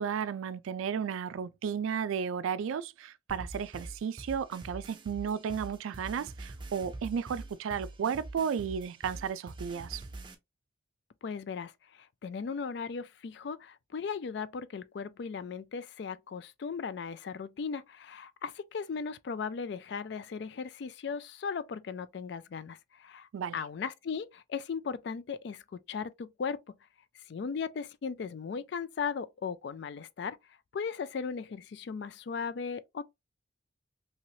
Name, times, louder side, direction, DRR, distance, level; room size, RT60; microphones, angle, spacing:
voice 1, 0.0-10.0 23.3-23.6, right 7 dB, 85° right, 0.3 m, -33 dB
sound 1, 3.3-10.3, right 2 dB, 25° right, 0.5 m, -44 dB
voice 2, 11.2-26.8 27.1-30.4 30.7-33.0, left 5 dB, 55° left, 0.3 m, -37 dB
3.0 x 2.9 x 2.7 m
head